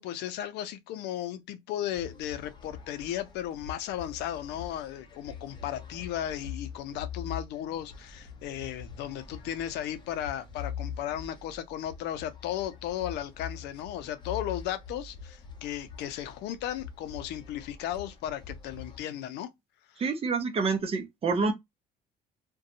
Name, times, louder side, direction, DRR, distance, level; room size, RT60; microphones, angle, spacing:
voice 1, 0.0-19.5, left 11 dB, 80° left, 0.5 m, -35 dB
sound 1, 1.9-19.0, left 7 dB, 25° left, 0.6 m, -44 dB
voice 2, 20.0-21.5, right 4 dB, 35° right, 0.6 m, -27 dB
2.7 x 2.2 x 2.5 m
cardioid pair, 110°, 17 cm